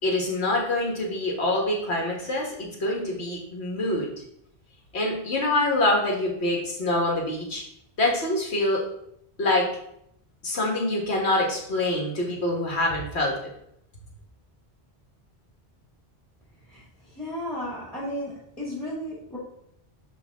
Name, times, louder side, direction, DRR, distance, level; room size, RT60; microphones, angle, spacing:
voice 1, 0.0-4.1 4.9-7.6 8.0-8.8 9.4-9.7 10.4-13.3, left 1 dB, 85° left, -1 dB, 1.9 m, -25 dB
voice 2, 17.1-19.4, equal, ahead, -7 dB, 2.0 m, -34 dB
10.0 x 3.5 x 3.6 m, 0.73 s
omnidirectional pair, 1.1 m